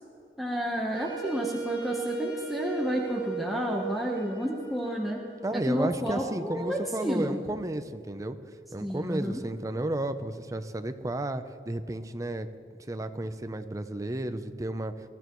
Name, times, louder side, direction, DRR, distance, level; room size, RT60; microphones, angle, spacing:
voice 1, 0.4-5.2 5.7-7.4 8.8-9.4, equal, ahead, -2 dB, 1.0 m, -30 dB
Wind instrument woodwind instrument, 0.9-5.9, right 5 dB, 25° left, 2.1 m, -37 dB
voice 2, 5.4-8.4 8.7-12.5 12.9-15.1, right 1 dB, 20° right, 9 dB, 0.6 m, -33 dB
22.0 x 13.5 x 3.1 m, 2.5 s
head